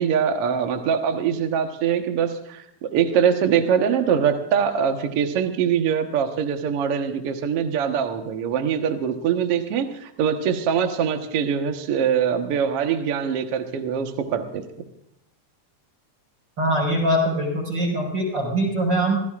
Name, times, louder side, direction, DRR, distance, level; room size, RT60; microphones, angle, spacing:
voice 1, 0.0-14.6, right 7 dB, 75° right, 5 dB, 1.3 m, -23 dB
voice 2, 16.6-19.2, right 1 dB, 25° right, -1 dB, 5.6 m, -22 dB
27.0 x 15.5 x 2.5 m, 0.81 s
omnidirectional pair, 4.7 m